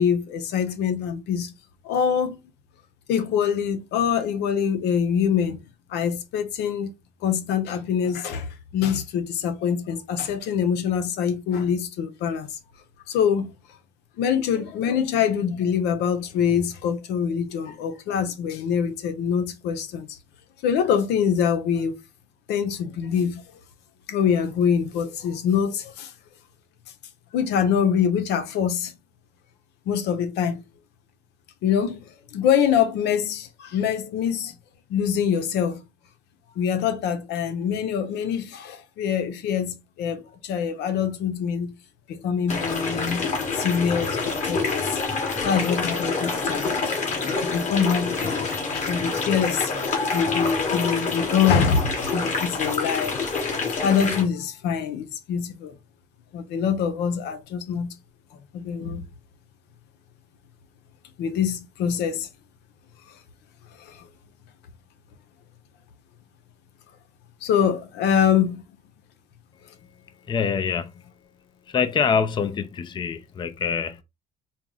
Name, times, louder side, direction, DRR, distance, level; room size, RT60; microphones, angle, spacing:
voice 1, 0.0-1.5 1.8-2.4 3.1-5.6 5.9-6.9 7.2-12.6 13.1-13.5 14.2-20.1 20.6-21.9 22.5-23.4 24.1-26.1 27.3-28.9 29.9-30.6 31.6-32.0 32.3-34.6 34.9-35.8 36.6-41.7 42.1-43.3 43.5-45.0 45.3-46.8 47.3-49.7 50.1-53.2 53.8-55.7 56.3-57.9 58.5-59.0 61.2-62.3 63.9-64.0 67.4-68.6, left 7 dB, 85° left, 0.8 m, -24 dB
sound 1, 42.5-54.2, left 4 dB, 45° left, 1.7 m, -27 dB
voice 2, 70.3-71.0 71.7-74.0, left 6 dB, 30° left, 0.5 m, -25 dB
4.5 x 2.1 x 3.8 m
cardioid pair, 110°, 17 cm